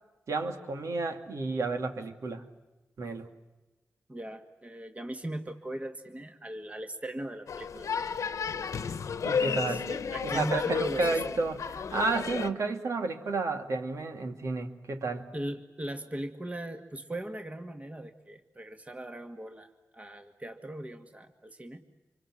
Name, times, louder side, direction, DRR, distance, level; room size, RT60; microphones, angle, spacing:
voice 1, 0.3-2.4 3.0-3.3 9.2-9.8 10.2-15.2, right 3 dB, 80° right, 5 dB, 2.4 m, -31 dB
voice 2, 4.1-7.9 9.7-11.1 15.3-21.8, right 1 dB, 25° right, 5 dB, 2.1 m, -39 dB
sound 1, 7.5-12.5, left 6 dB, 85° left, 1.1 m, -32 dB
27.0 x 24.0 x 7.7 m, 1.1 s
cardioid pair, 55°, 5 cm